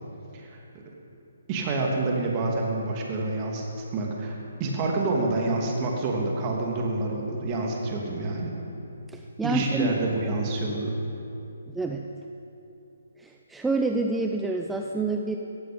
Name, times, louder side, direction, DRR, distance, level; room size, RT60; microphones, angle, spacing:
voice 1, 1.5-3.7 3.9-8.5 9.4-10.9, right 2 dB, 30° right, -1 dB, 2.8 m, -27 dB
voice 2, 9.1-9.9 11.7-12.1 13.2-15.4, right 3 dB, 5° right, 2 dB, 0.6 m, -28 dB
17.0 x 14.5 x 5.3 m, 2.8 s
figure-of-eight pair, 140°, 0 cm